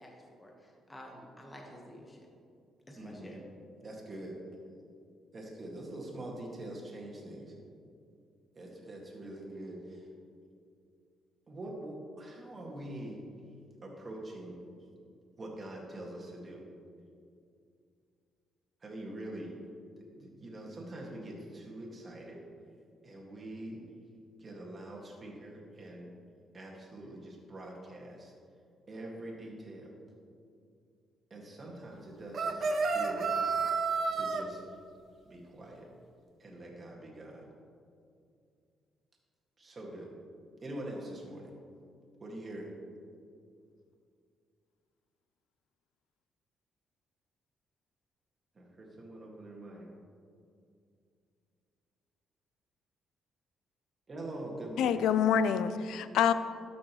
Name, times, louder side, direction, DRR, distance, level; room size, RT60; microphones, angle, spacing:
voice 1, 0.0-2.3 2.9-3.4, equal, 15° left, 0 dB, 1.3 m, -50 dB
voice 2, 3.0-3.3 3.8-4.4 5.3-7.6 8.5-10.1 11.5-13.2 13.8-14.6 15.4-16.7 18.8-19.6 20.0-22.4 23.0-24.0 24.4-26.1 26.5-28.3 28.9-29.9 31.3-33.4 34.1-34.6 35.2-35.9 36.4-37.5 39.6-40.1 40.6-41.5 42.2-42.7 48.6-49.9 54.1-55.0, right 1 dB, 35° right, -2 dB, 1.9 m, -44 dB
sound 1, 32.3-34.4, right 4 dB, 55° right, 0.6 m, -30 dB
voice 3, 54.8-56.3, left 8 dB, 80° left, 13 dB, 0.4 m, -26 dB
12.5 x 6.3 x 3.1 m, 2.4 s
cardioid pair, 90°, 0 cm